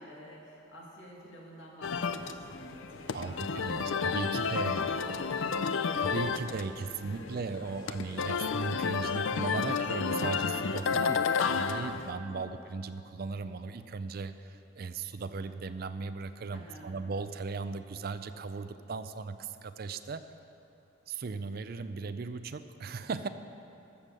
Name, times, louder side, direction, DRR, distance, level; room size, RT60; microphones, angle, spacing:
voice 1, 0.0-4.2 4.8-5.9 6.7-7.8 12.3-12.4 16.5-16.9, equal, 70° left, -3 dB, 2.4 m, -50 dB
sound 1, 1.8-12.1, left 5 dB, 90° left, 0.5 m, -31 dB
voice 2, 3.1-5.0 6.0-20.2 21.1-23.3, right 4 dB, 50° right, 11 dB, 0.4 m, -37 dB
13.5 x 7.2 x 6.6 m, 2.8 s
head